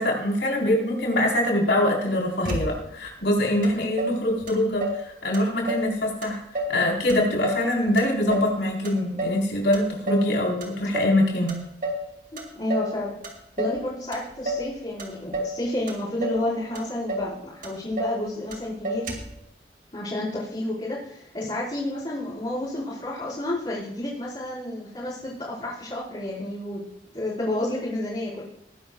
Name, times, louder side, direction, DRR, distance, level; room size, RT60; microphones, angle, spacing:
voice 1, 0.0-6.4 6.7-11.6, left 1 dB, 85° left, -1 dB, 4.2 m, -24 dB
Motor vehicle (road), 2.4-3.1 3.6-3.7 4.0-5.1 5.3-5.9 6.2-6.8 7.1-8.6 8.8-9.4 9.7-10.3 10.6-11.2 11.5-12.1 12.4-13.0 13.2-13.8 14.1-14.7 15.0-15.6 15.9-16.5 16.8-16.9 17.1-17.3 17.6-18.2 18.5-18.6 18.8-19.4, right 1 dB, 50° right, 2.5 m, -30 dB
voice 2, 12.5-13.1 13.6-19.0 19.9-26.8 27.1-28.4, left 1 dB, 30° left, -10 dB, 4.6 m, -30 dB
20.0 x 11.0 x 2.4 m, 0.83 s
head